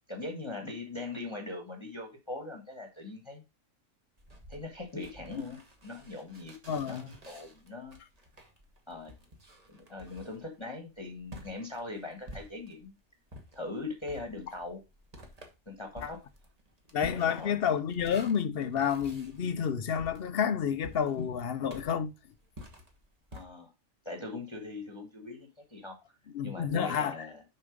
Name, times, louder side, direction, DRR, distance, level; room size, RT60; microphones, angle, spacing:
voice 1, 0.1-3.4 4.5-8.0 8.9-9.1 9.7-12.9 13.5-14.8 15.7-16.2 17.0-17.6 23.3-23.7 24.0-26.0 26.4-27.4, left 2 dB, 20° left, 1.4 m, -41 dB
sound 1, 4.2-12.9 13.3-23.4, equal, 30° right, 1.4 m, -51 dB
voice 2, 6.7-7.1 16.0-16.1 16.9-22.1 26.3-27.1, left 7 dB, 55° left, 0.8 m, -30 dB
6.7 x 5.4 x 5.0 m
omnidirectional pair, 1.4 m